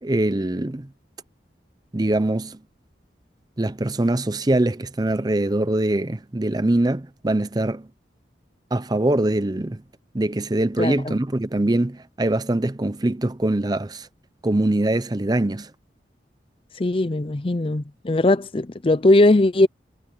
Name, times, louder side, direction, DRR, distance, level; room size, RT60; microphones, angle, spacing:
voice 1, 0.0-0.9 1.9-2.6 3.6-7.9 8.7-9.8 10.1-14.1 14.4-15.7, right 1 dB, 25° right, 0.7 m, -23 dB
voice 2, 10.8-11.2 16.8-19.7, left 2 dB, 30° left, 0.5 m, -19 dB
head